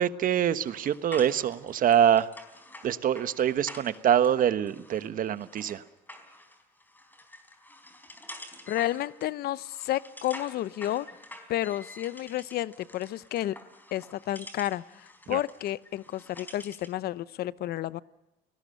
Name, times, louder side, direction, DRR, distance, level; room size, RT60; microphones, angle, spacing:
voice 1, 0.0-2.3 2.8-5.8 15.3-15.4, right 9 dB, 55° right, 13 dB, 1.2 m, -25 dB
sound 1, 0.6-17.0, left 1 dB, 10° left, 4.1 m, -48 dB
voice 2, 8.7-11.1 11.5-13.6 13.9-18.0, left 13 dB, 70° left, 18 dB, 0.8 m, -31 dB
29.0 x 19.0 x 6.6 m, 0.96 s
cardioid pair, 110°, 17 cm